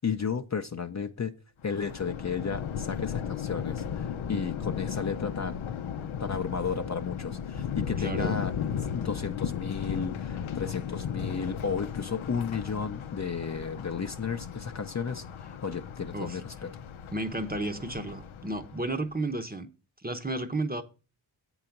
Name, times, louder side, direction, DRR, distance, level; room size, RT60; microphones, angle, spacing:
voice 1, 0.0-1.3 1.6-5.7 6.2-8.5 8.9-16.7, left 6 dB, 35° left, 0.6 m, -33 dB
Thunder, 1.6-19.0, left 8 dB, 80° left, 0.6 m, -35 dB
voice 2, 8.0-8.4 16.1-16.4 17.1-19.7 20.0-20.8, right 2 dB, 20° right, 0.8 m, -32 dB
7.6 x 3.9 x 5.8 m
cardioid pair, 40°, 48 cm